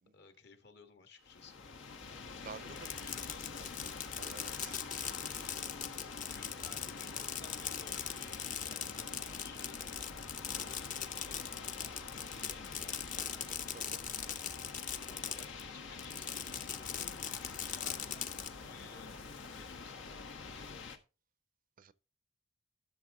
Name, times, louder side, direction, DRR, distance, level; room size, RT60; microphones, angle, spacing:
voice 1, 0.1-1.6 3.0-3.7 6.3-9.8 10.5-13.5 15.0-21.0, left 4 dB, 60° left, 1.7 m, -57 dB
sound 1, 1.2-21.0, left 4 dB, 85° left, 1.3 m, -46 dB
voice 2, 2.4-2.9 4.2-4.8 13.7-14.0 21.8-21.9, right 5 dB, 45° right, 0.5 m, -50 dB
Fireworks, 2.7-15.6 16.0-18.5, left 8 dB, 45° left, 0.8 m, -40 dB
12.5 x 6.5 x 3.6 m
head